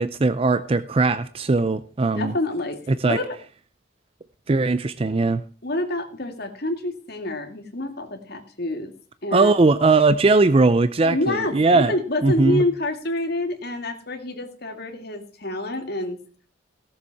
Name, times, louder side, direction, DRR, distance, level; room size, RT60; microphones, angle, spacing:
voice 1, 0.0-2.3 2.9-3.2 4.5-5.4 9.3-11.9 12.2-12.6, right 3 dB, 30° right, 13 dB, 0.4 m, -19 dB
voice 2, 2.2-2.8 3.1-3.4 5.6-8.9 9.2-9.5 11.0-16.2, left 1 dB, 55° left, 3 dB, 2.3 m, -27 dB
17.0 x 7.0 x 4.7 m, 0.40 s
head